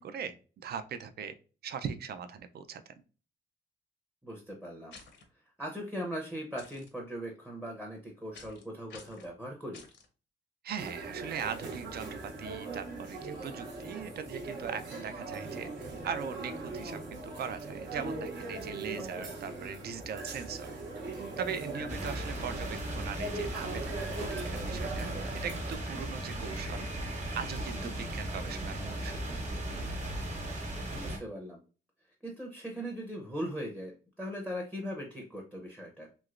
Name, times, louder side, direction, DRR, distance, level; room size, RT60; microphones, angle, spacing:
voice 1, 0.0-1.3 1.6-2.9 10.6-15.7 16.0-20.7 21.4-23.9 24.2-26.9 27.3-29.2, right 7 dB, 55° right, 11 dB, 0.4 m, -40 dB
voice 2, 4.2-4.9 5.6-9.9 19.0-19.3 30.9-31.6 32.2-36.1, equal, 5° right, 0 dB, 0.6 m, -39 dB
sound 1, 4.9-5.2 6.6-6.9 8.3-8.6 8.9-9.3 9.7-10.1, left 4 dB, 75° left, 0.7 m, -51 dB
sound 2, 10.8-25.8, right 3 dB, 75° right, 0.8 m, -40 dB
sound 3, 21.9-31.2, right 1 dB, 40° right, 1.0 m, -37 dB
3.1 x 2.9 x 2.4 m, 0.36 s
wide cardioid pair, 145°, 19 cm